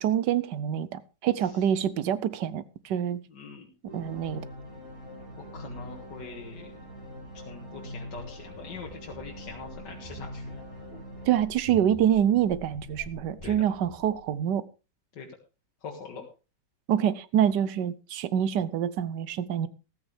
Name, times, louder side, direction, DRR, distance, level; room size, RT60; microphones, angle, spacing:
voice 1, 0.0-3.2 3.9-4.4 11.2-14.6 16.9-19.7, right 9 dB, 75° right, 1.4 m, -26 dB
voice 2, 3.3-3.7 5.4-6.7 7.5-10.6 13.4-13.6 15.2-15.3 15.8-16.3, left 5 dB, 75° left, 2.4 m, -43 dB
sound 1, 3.9-12.3, equal, 50° right, 6.6 m, -43 dB
sound 2, 8.1-14.4, left 1 dB, 25° left, 4.1 m, -47 dB
14.5 x 13.5 x 3.4 m
omnidirectional pair, 1.9 m